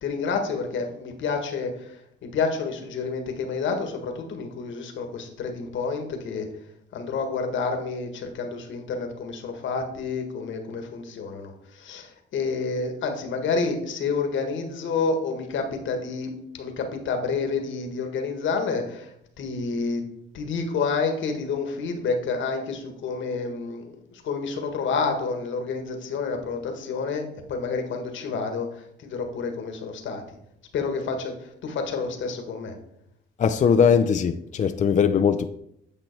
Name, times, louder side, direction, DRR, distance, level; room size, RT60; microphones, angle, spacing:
voice 1, 0.0-2.0 2.2-6.5 6.9-16.3 16.6-20.0 20.3-30.2 30.7-32.7, left 4 dB, 75° left, 1.6 m, -29 dB
voice 2, 33.4-35.5, left 7 dB, 40° left, 0.5 m, -20 dB
9.1 x 6.0 x 4.5 m
cardioid pair, 90°, 20 cm